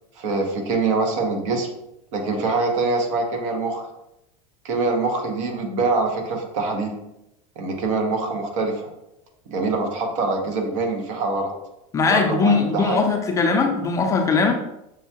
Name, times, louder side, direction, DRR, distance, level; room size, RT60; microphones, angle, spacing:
voice 1, 0.2-1.7 2.1-3.9 4.6-7.0 7.6-8.9 9.5-11.5 12.1-13.0, right 3 dB, 70° right, 3 dB, 0.9 m, -24 dB
voice 2, 11.9-14.5, left 4 dB, 20° left, 3 dB, 0.4 m, -20 dB
6.2 x 2.2 x 2.8 m, 0.85 s
supercardioid pair, 145°, 17 cm